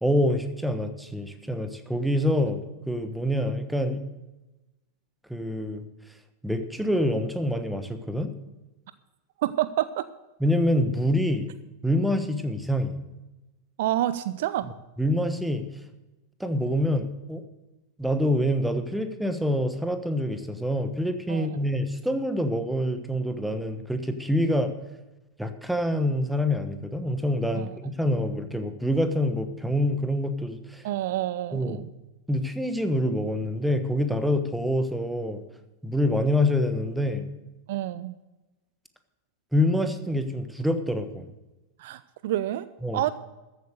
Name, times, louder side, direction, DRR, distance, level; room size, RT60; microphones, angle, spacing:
voice 1, 0.0-4.0 5.3-5.9 6.4-8.3 10.4-11.5 11.8-12.9 15.0-15.6 16.4-17.4 18.0-24.7 25.4-30.8 31.5-31.8 32.3-35.4 35.8-37.3 39.5-41.3 42.8-43.1, left 1 dB, ahead, 8 dB, 1.2 m, -26 dB
voice 2, 9.4-10.1 13.8-14.7 21.3-21.7 27.5-27.7 30.8-31.9 37.7-38.2 41.8-42.7 42.9-43.1, right 13 dB, 55° right, 15 dB, 0.4 m, -28 dB
14.0 x 8.1 x 6.7 m, 1.1 s
figure-of-eight pair, 90°, 0 cm